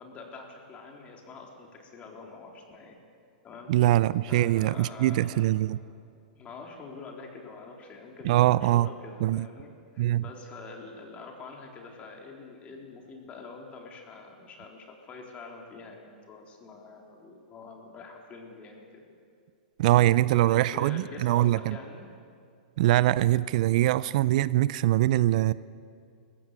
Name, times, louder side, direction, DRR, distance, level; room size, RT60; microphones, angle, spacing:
voice 1, 0.0-3.0 3.4-3.7 4.3-5.5 6.4-19.0 20.3-22.1, left 4 dB, 30° left, 1 dB, 3.9 m, -45 dB
voice 2, 3.7-5.8 8.2-8.9 9.2-9.5 10.0-10.2 19.8-21.8 22.8-25.5, right 15 dB, 60° right, 18 dB, 0.5 m, -23 dB
21.0 x 15.5 x 8.4 m, 2.3 s
hypercardioid pair, 120°, 5 cm